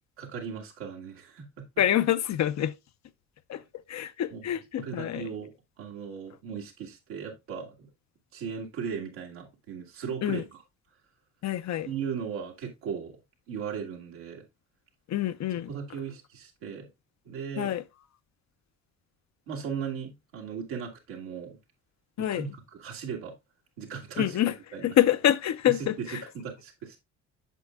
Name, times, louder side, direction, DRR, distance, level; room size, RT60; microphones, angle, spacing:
voice 1, 0.2-1.6 4.3-4.5 4.8-5.5 5.8-7.9 8.3-10.6 11.8-13.2 13.5-14.4 15.7-16.9 17.3-17.8 19.5-21.6 22.2-23.3 23.8-24.4 24.7-25.0 25.7-27.0, right 7 dB, 85° right, 1.9 m, -37 dB
voice 2, 1.8-2.7 3.5-3.6 3.9-5.3 10.2-10.4 11.4-11.9 15.1-15.7 17.6-17.8 22.2-22.4 24.2-24.5 24.8-26.2, left 12 dB, 50° left, 0.7 m, -26 dB
8.1 x 6.3 x 2.4 m
hypercardioid pair, 55°, 34 cm